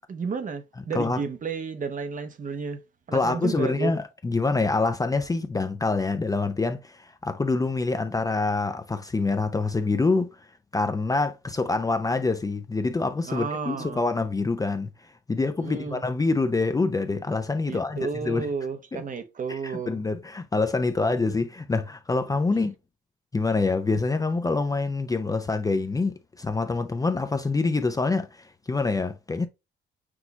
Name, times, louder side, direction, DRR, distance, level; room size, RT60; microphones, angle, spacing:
voice 1, 0.1-2.8 3.1-3.9 13.3-14.0 15.6-16.0 17.7-19.9, right 5 dB, 40° right, 0.8 m, -32 dB
voice 2, 3.1-10.3 10.7-14.9 15.3-18.5 18.9-19.0 19.5-22.7 23.3-29.5, left 3 dB, 20° left, 0.5 m, -26 dB
6.1 x 2.3 x 2.8 m
cardioid pair, 90°, 20 cm